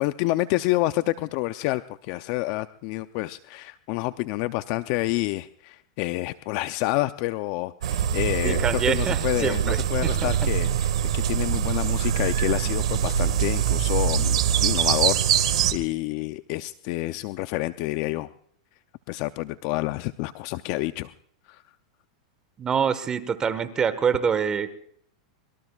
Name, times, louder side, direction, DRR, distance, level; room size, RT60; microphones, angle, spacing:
voice 1, 0.0-18.3 19.1-21.1 21.5-21.6, left 18 dB, 50° left, 12 dB, 0.6 m, -28 dB
sound 1, 7.8-15.7, right 9 dB, 80° right, 1.9 m, -24 dB
voice 2, 8.4-10.3 22.6-24.7, right 7 dB, 20° right, 12 dB, 1.4 m, -26 dB
25.0 x 23.0 x 2.4 m, 0.66 s
hypercardioid pair, 130°, 3 cm